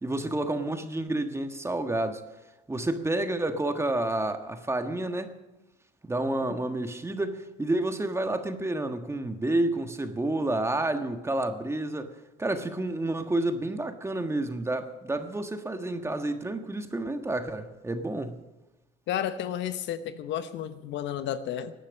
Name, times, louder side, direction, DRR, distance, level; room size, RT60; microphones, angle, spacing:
voice 1, 0.0-2.2 2.7-5.3 6.0-18.4, right 2 dB, 15° right, 1.4 m, -30 dB
voice 2, 19.1-21.7, left 10 dB, 65° left, 1.0 m, -32 dB
18.0 x 10.0 x 6.4 m
supercardioid pair, 85°, 20 cm